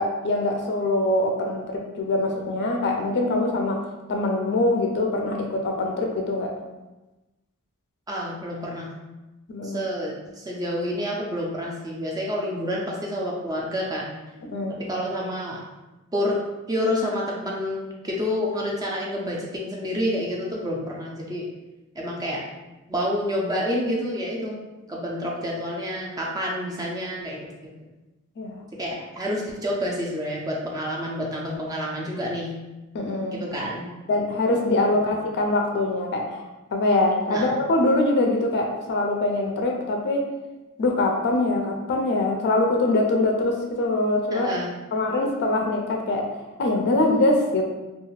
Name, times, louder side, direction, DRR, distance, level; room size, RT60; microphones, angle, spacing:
voice 1, 0.0-3.8 4.1-6.5 9.5-9.9 14.4-14.8 28.4-28.6 32.9-33.4 34.1-36.4 36.7-40.3 40.8-44.5 44.9-46.3 46.6-47.6, left 2 dB, 50° left, 2 dB, 0.4 m, -23 dB
voice 2, 8.1-8.9 9.6-14.1 14.9-15.6 16.1-16.4 16.7-21.5 22.0-22.4 22.9-24.6 24.9-27.4 28.8-32.6 33.3-33.9 37.3-37.5 44.3-44.7, equal, 15° right, -2 dB, 0.3 m, -28 dB
2.4 x 2.3 x 3.1 m, 1.1 s
head